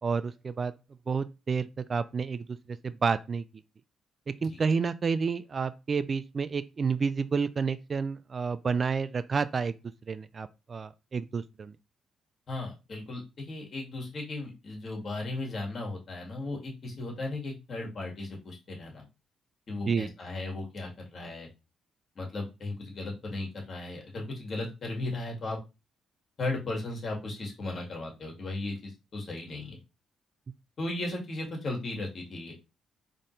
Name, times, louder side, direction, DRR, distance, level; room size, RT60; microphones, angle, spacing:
voice 1, 0.0-0.7 1.1-3.4 4.3-9.7 10.1-11.8 19.9-20.1, right 5 dB, 40° right, 0.4 m, -30 dB
voice 2, 12.5-19.0 19.7-21.5 22.2-25.6 26.4-29.8 30.8-32.6, left 2 dB, 45° left, 2.2 m, -36 dB
4.4 x 3.7 x 3.2 m
cardioid pair, 90°, 0 cm